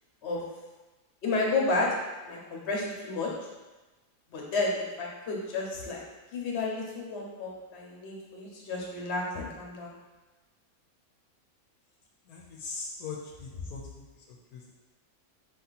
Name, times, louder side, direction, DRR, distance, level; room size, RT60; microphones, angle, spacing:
voice 1, 1.2-1.9 2.2-3.3 4.3-6.0 6.3-9.9, left 3 dB, 50° left, -2 dB, 1.1 m, -31 dB
voice 2, 12.3-14.7, left 4 dB, 80° left, -1 dB, 1.1 m, -41 dB
4.8 x 2.8 x 4.0 m, 1.2 s
omnidirectional pair, 1.6 m